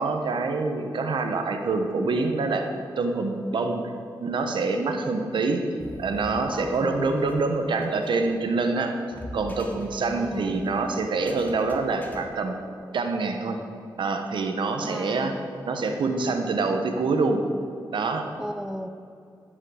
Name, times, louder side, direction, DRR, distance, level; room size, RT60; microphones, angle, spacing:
voice 1, 0.0-2.7 3.0-3.8 4.2-5.6 6.0-8.9 9.3-12.5 12.9-13.6 14.0-15.3 15.6-17.4 17.9-18.2, right 3 dB, 75° right, 5 dB, 1.1 m, -26 dB
sound 1, 5.8-12.2, equal, 20° left, 1.5 m, -45 dB
voice 2, 6.5-6.9 10.2-10.6 14.8-15.4 18.4-18.9, equal, 5° right, 9 dB, 0.6 m, -35 dB
14.5 x 5.6 x 6.4 m, 2.4 s
cardioid pair, 80°, 8 cm